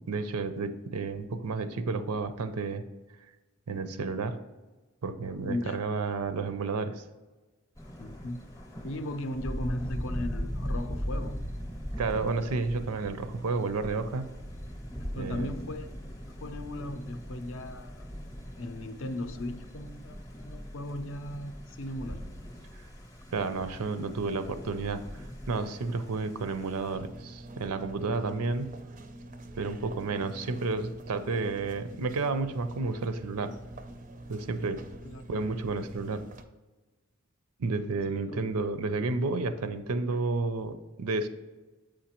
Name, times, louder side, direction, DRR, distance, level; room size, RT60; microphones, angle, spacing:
voice 1, 0.1-2.8 3.7-4.4 5.0-7.0 12.0-14.3 15.2-15.5 23.3-28.7 29.6-33.5 34.3-34.9 35.3-36.2 37.6-41.3, right 3 dB, 90° right, 10 dB, 0.5 m, -31 dB
voice 2, 5.4-5.8 8.0-8.4 8.8-11.4 15.1-18.1 18.6-22.3 35.0-35.2 38.1-38.5 40.0-40.2, left 1 dB, 60° left, 10 dB, 0.5 m, -37 dB
Thunder, 7.8-27.0, equal, 15° left, 0.7 m, -40 dB
sound 1, 26.9-36.4, right 1 dB, 35° right, 0.4 m, -46 dB
7.5 x 5.1 x 2.9 m, 1.2 s
head